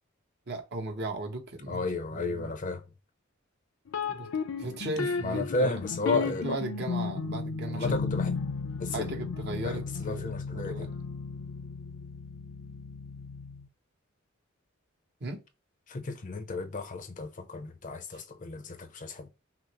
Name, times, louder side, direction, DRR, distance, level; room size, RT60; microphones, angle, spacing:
voice 1, 0.5-1.9 2.1-2.5 4.1-4.3 4.6-5.7 6.1-7.9 8.9-10.9 15.2-15.4 18.1-18.2, right 2 dB, 55° right, 1.0 m, -36 dB
voice 2, 1.7-2.8 5.2-6.6 7.7-8.3 8.8-9.1 9.6-10.9 15.9-19.3, left 3 dB, 40° left, 0.6 m, -33 dB
sound 1, 3.9-13.7, left 4 dB, 85° left, 0.5 m, -34 dB
5.7 x 2.0 x 2.9 m
head